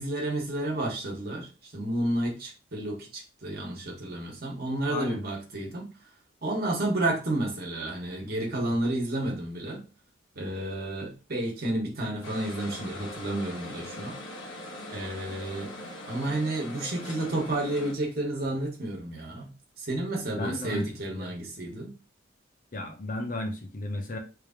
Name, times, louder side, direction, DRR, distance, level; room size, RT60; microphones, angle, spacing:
voice 1, 0.0-5.9 6.4-9.8 10.3-14.2 14.9-15.7 16.1-21.9, right 1 dB, 50° right, -1 dB, 1.2 m, -31 dB
voice 2, 4.9-5.2 20.3-21.4 22.7-24.2, left 2 dB, 40° left, 3 dB, 0.7 m, -34 dB
sound 1, 12.2-17.9, left 1 dB, 75° left, 1.1 m, -41 dB
3.2 x 2.7 x 3.6 m, 0.33 s
head